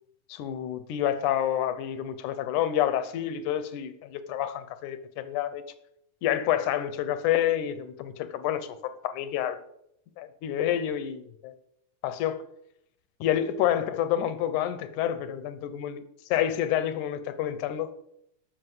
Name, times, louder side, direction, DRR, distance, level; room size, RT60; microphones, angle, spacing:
voice 1, 0.3-5.6 6.2-9.6 10.2-11.5 12.0-12.4 13.2-16.0 16.3-17.9, left 11 dB, 75° left, 1.9 m, -28 dB
13.0 x 6.4 x 7.8 m
omnidirectional pair, 4.3 m